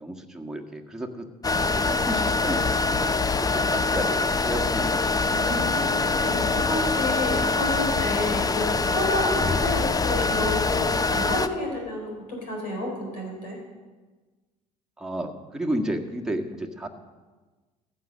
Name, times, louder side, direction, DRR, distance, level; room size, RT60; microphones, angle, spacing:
voice 1, 0.0-5.0 9.3-9.6 15.0-16.9, right 1 dB, 5° right, 1 dB, 1.6 m, -33 dB
sound 1, 1.4-11.5, left 3 dB, 15° left, 0.6 m, -24 dB
voice 2, 5.3-13.6, left 1 dB, 80° left, -1 dB, 4.2 m, -30 dB
15.0 x 8.7 x 6.4 m, 1.3 s
figure-of-eight pair, 60°, 21 cm